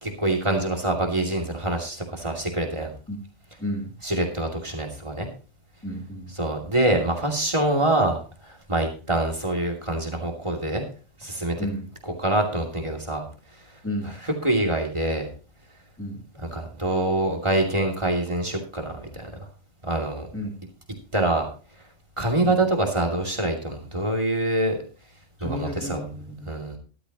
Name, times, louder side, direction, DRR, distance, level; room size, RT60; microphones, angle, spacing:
voice 1, 0.0-2.9 4.0-5.3 6.4-10.9 11.2-11.7 12.1-13.2 14.4-15.3 16.5-19.3 19.8-20.3 21.1-21.5 22.2-24.8 25.4-26.0 26.5-26.8, right 1 dB, 25° right, 2 dB, 2.7 m, -25 dB
voice 2, 3.6-3.9 5.8-6.3 11.6-11.9 13.8-14.1 16.0-16.2 20.3-20.5 22.4-22.6 25.4-26.8, equal, 10° left, 0 dB, 3.2 m, -32 dB
13.5 x 12.5 x 3.0 m, 0.35 s
omnidirectional pair, 1.2 m